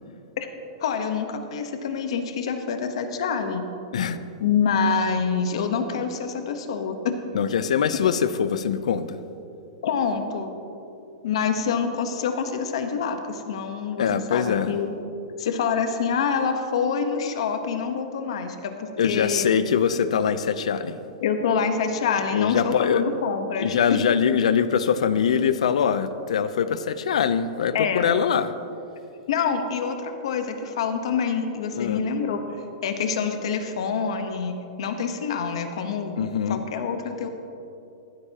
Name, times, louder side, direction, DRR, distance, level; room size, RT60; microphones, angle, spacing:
voice 1, 0.8-3.7 4.4-7.1 9.8-10.5 11.2-14.9 15.4-19.5 21.2-23.7 27.7-28.1 29.3-32.4 32.8-36.2 36.5-37.3, left 6 dB, 60° left, 6 dB, 1.1 m, -26 dB
voice 2, 7.3-9.2 14.0-14.7 19.0-21.0 22.3-23.0 23.6-28.5 31.7-32.0 36.2-36.6, left 7 dB, 85° left, 13 dB, 0.6 m, -23 dB
14.5 x 13.0 x 2.9 m, 2.8 s
supercardioid pair, 175°, 3 cm